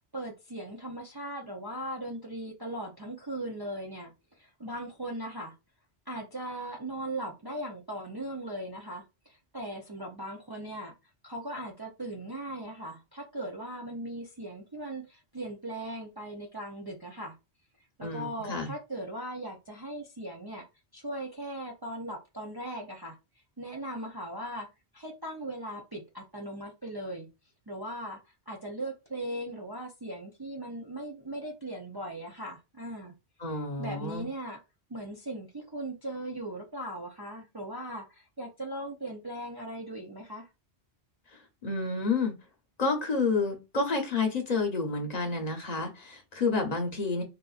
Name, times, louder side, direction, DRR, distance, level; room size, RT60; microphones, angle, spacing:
voice 1, 0.1-4.1 4.4-5.5 6.1-10.9 11.2-17.4 18.0-20.6 20.9-23.2 23.6-24.7 24.9-27.3 27.7-33.1 33.8-34.6 34.9-40.5, right 1 dB, 35° right, 0.4 m, -38 dB
voice 2, 18.0-18.7 33.4-34.3 41.6-42.3 42.8-47.2, left 3 dB, 40° left, 0.9 m, -29 dB
4.0 x 2.5 x 2.3 m
omnidirectional pair, 1.1 m